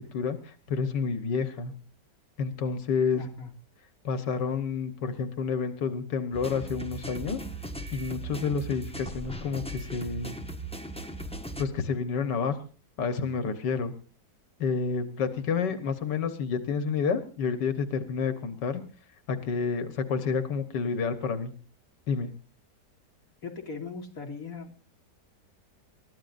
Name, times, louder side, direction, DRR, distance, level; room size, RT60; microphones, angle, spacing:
voice 1, 0.1-1.7 2.4-3.3 4.0-7.4 7.9-10.4 11.6-12.6 13.0-13.9 14.6-18.8 19.3-21.5 22.1-22.3, left 5 dB, 90° left, 9 dB, 1.9 m, -29 dB
voice 2, 3.1-3.5 15.8-15.9 23.4-24.8, left 4 dB, 50° left, 1 dB, 3.0 m, -39 dB
sound 1, 6.3-11.6, right 2 dB, 5° left, 1.1 m, -38 dB
29.0 x 13.5 x 2.6 m, 0.38 s
omnidirectional pair, 1.8 m